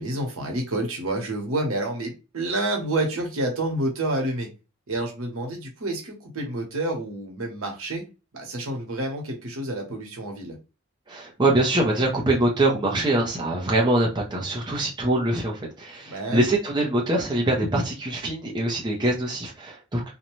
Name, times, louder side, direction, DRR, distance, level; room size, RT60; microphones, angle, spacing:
voice 1, 0.0-4.5 4.9-8.0 8.3-10.6 16.1-16.5, right 1 dB, 80° right, 1.0 m, -28 dB
voice 2, 11.1-20.0, right 1 dB, 20° right, 0.5 m, -24 dB
2.6 x 2.2 x 3.0 m
head